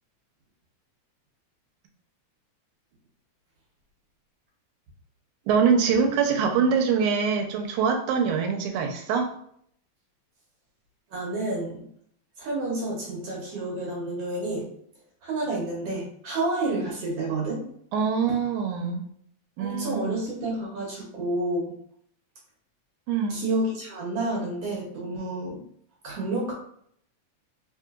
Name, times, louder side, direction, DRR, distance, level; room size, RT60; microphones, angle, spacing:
voice 1, 5.5-9.3 17.9-19.1 19.6-20.2 23.1-23.4, right 6 dB, 90° right, 3 dB, 2.1 m, -24 dB
voice 2, 11.1-11.9 12.4-14.7 15.2-17.7 19.6-21.7 23.3-25.6 26.0-26.5, right 2 dB, 65° right, -3 dB, 1.7 m, -29 dB
4.2 x 3.7 x 2.4 m, 0.66 s
omnidirectional pair, 3.4 m